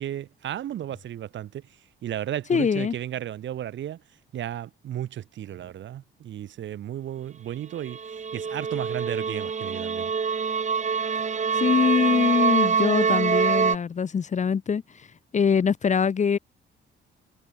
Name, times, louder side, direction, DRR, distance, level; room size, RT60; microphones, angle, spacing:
voice 1, 0.0-1.6 2.0-4.0 4.3-10.1, right 11 dB, 70° right, 2.5 m, -34 dB
voice 2, 2.5-2.9 11.5-14.8 15.3-16.4, left 6 dB, 35° left, 1.0 m, -23 dB
sound 1, 7.9-13.8, right 6 dB, 35° right, 2.0 m, -25 dB
cardioid pair, 90°, 20 cm